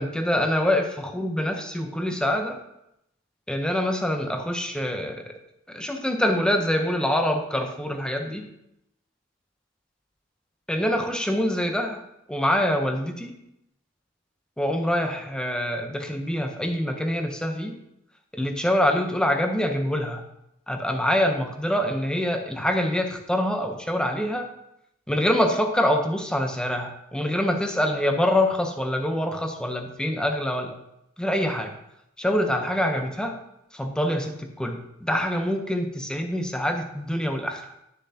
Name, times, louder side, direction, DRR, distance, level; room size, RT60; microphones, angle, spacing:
voice 1, 0.0-2.6 3.5-5.3 5.7-8.4 10.7-12.0 12.3-13.4 14.6-17.8 18.3-20.2 20.7-24.5 25.1-30.7 31.2-31.7 32.2-33.4 33.7-37.7, left 1 dB, 5° left, 4 dB, 0.7 m, -25 dB
11.5 x 6.8 x 2.8 m, 0.82 s
head